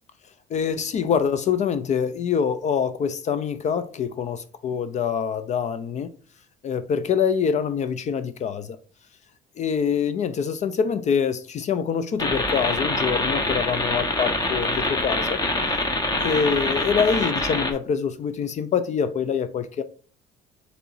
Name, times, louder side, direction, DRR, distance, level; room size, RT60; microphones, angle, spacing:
voice 1, 0.5-6.1 6.6-8.8 9.6-15.4 16.2-19.8, left 7 dB, 45° left, 0.4 m, -25 dB
sound 1, 12.2-17.7, left 2 dB, 25° left, 1.0 m, -25 dB
6.6 x 3.0 x 2.5 m
cardioid pair, 110°, 17 cm